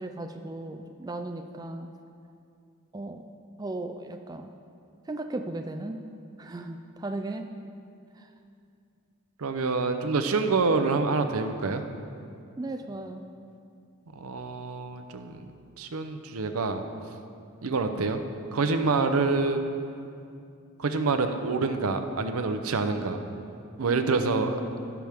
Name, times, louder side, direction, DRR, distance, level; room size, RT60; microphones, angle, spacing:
voice 1, 0.0-1.9 2.9-3.2 3.6-4.5 5.1-6.0 6.4-7.5 8.2-8.3 12.6-13.2 23.9-24.9, right 2 dB, 15° right, 5 dB, 0.3 m, -36 dB
voice 2, 9.4-11.8 14.2-15.5 15.8-16.8 17.6-18.2 18.5-19.6 20.8-23.2 23.8-24.6, right 4 dB, 80° right, 7 dB, 0.6 m, -26 dB
15.5 x 6.0 x 3.5 m, 2.5 s
head